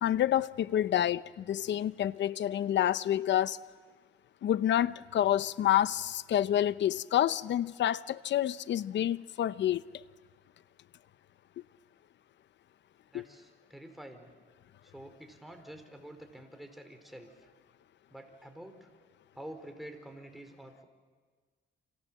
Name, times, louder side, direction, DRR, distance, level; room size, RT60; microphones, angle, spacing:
voice 1, 0.0-3.6 4.4-9.8 13.1-13.2, left 11 dB, 65° left, 0.8 m, -28 dB
voice 2, 13.1-14.3 14.8-17.3 18.1-18.9 19.3-20.8, right 1 dB, ahead, 4.5 m, -48 dB
29.5 x 26.5 x 7.6 m
cardioid pair, 90°, 20 cm